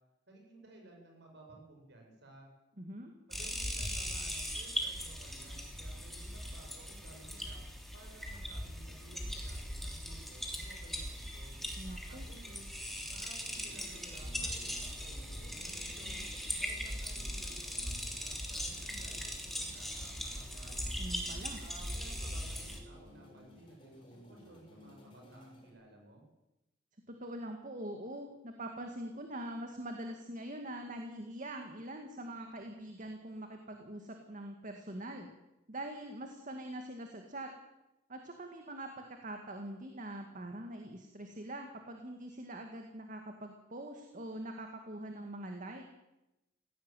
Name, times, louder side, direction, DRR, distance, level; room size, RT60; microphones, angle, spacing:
voice 1, 0.3-2.5 3.3-7.6 7.9-11.6 12.1-12.7 13.1-16.2 16.6-20.9 21.6-26.2, right 2 dB, 65° right, 1 dB, 7.2 m, -57 dB
voice 2, 2.8-3.1 11.8-12.3 21.0-21.6 27.1-35.3 35.7-37.5 38.1-38.9 39.2-45.9, right 1 dB, 45° right, 4 dB, 2.1 m, -43 dB
sound 1, 3.3-22.8, equal, ahead, 3.3 m, -40 dB
sound 2, 13.5-25.7, equal, 25° left, 6.4 m, -56 dB
17.5 x 16.0 x 9.2 m, 0.94 s
head